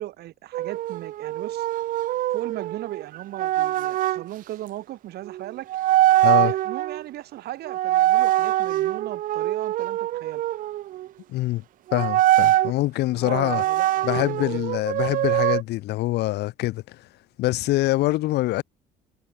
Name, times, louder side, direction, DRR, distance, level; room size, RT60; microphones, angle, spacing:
voice 1, 0.0-1.7 2.3-5.7 6.3-10.4 13.1-14.7, right 14 dB, 70° right, 2.7 m, -37 dB
sound 1, 0.5-4.2 5.3-5.4 5.7-7.0 7.7-11.1 11.9-12.7 13.3-15.6, right 14 dB, 55° right, 0.4 m, -23 dB
voice 2, 11.3-11.6 11.9-13.6 14.0-17.0 17.4-18.6, left 17 dB, 80° left, 1.7 m, -24 dB
cardioid pair, 110°, 17 cm